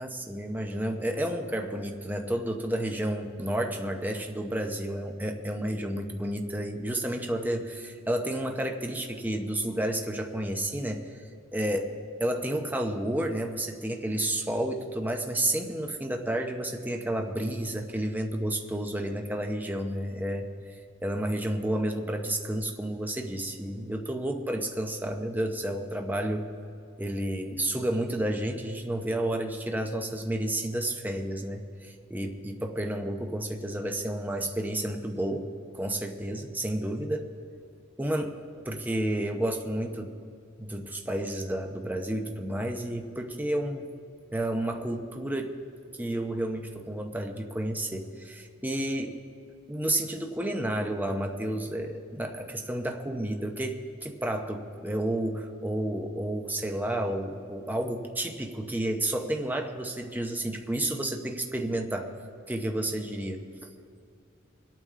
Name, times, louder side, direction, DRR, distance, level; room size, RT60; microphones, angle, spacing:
voice 1, 0.0-11.0 11.5-11.9 12.2-20.5 21.0-26.4 27.0-35.5 35.7-37.3 38.0-38.3 38.6-40.1 40.6-43.8 44.3-45.5 45.9-49.1 49.7-62.1 62.5-63.7, right 1 dB, 10° right, 3 dB, 0.8 m, -31 dB
24.0 x 8.9 x 3.7 m, 2.4 s
head